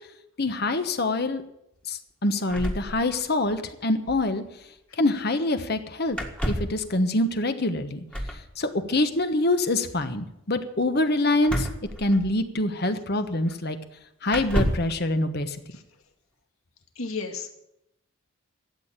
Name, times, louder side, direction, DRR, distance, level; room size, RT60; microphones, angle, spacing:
voice 1, 0.4-1.4 1.9-4.4 5.0-6.2 6.4-8.0 8.6-11.7 12.0-13.8 14.2-15.6, left 2 dB, 50° left, 9 dB, 1.2 m, -25 dB
sound 1, 2.5-3.6 3.8-3.9 4.1-4.3 6.1-6.8 8.1-8.5 11.4-12.6 13.5-13.6 14.3-15.0, equal, 5° left, 1.6 m, -30 dB
voice 2, 17.0-17.5, left 4 dB, 90° left, 5 dB, 2.1 m, -33 dB
13.5 x 8.5 x 8.8 m, 0.82 s
head